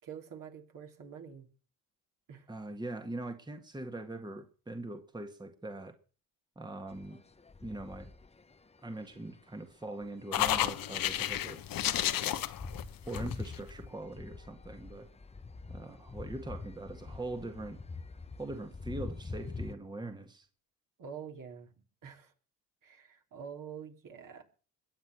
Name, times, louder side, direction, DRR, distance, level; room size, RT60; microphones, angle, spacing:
voice 1, 0.0-1.5 2.3-2.5 21.0-21.7 22.0-22.3 22.8-24.4, right 7 dB, 50° right, 4 dB, 3.4 m, -46 dB
voice 2, 2.5-5.9 6.6-7.2 7.6-8.1 8.8-11.6 12.2-12.4 13.1-15.1 15.7-17.8 18.4-20.5, right 2 dB, 10° right, 6 dB, 1.8 m, -42 dB
sound 1, 6.9-8.6 9.1-9.4 10.0-10.6 10.9-11.0 11.3-11.4 11.5-19.7, left 3 dB, 15° left, 1.0 m, -44 dB
sound 2, 10.3-13.6, left 12 dB, 55° left, 1.3 m, -32 dB
21.5 x 8.2 x 6.2 m, 0.39 s
supercardioid pair, 75°, 40 cm